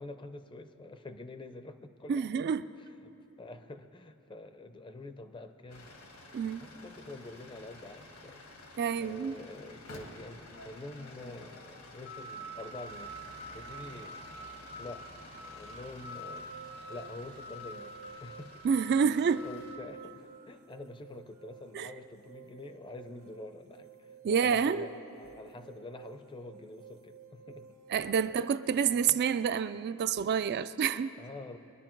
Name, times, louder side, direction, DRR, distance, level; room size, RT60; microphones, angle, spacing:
voice 1, 0.0-2.4 3.0-3.1 3.4-5.9 6.6-8.4 9.0-13.2 13.5-14.2 14.8-15.2 15.5-16.5 16.9-18.6 19.4-27.8 31.2-31.6, left 2 dB, 20° left, 0.5 m, -46 dB
voice 2, 2.1-2.7 6.3-6.7 8.8-9.4 18.6-19.5 21.7-21.9 24.2-24.9 27.9-31.1, right 7 dB, 50° right, 0.3 m, -28 dB
sound 1, 5.7-19.8, equal, 75° left, 1.8 m, -47 dB
sound 2, 16.1-29.1, right 6 dB, 70° right, 0.8 m, -53 dB
22.5 x 10.5 x 4.5 m
head